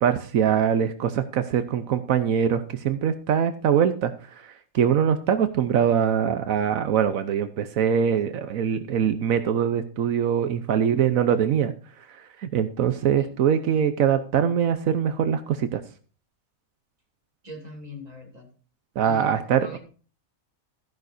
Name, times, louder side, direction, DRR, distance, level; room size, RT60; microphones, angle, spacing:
voice 1, 0.0-15.8 19.0-19.8, right 8 dB, 80° right, 9 dB, 1.2 m, -23 dB
voice 2, 17.4-18.5 19.0-19.8, left 2 dB, 30° right, 2 dB, 2.7 m, -41 dB
14.5 x 10.5 x 2.6 m, 0.38 s
omnidirectional pair, 1.4 m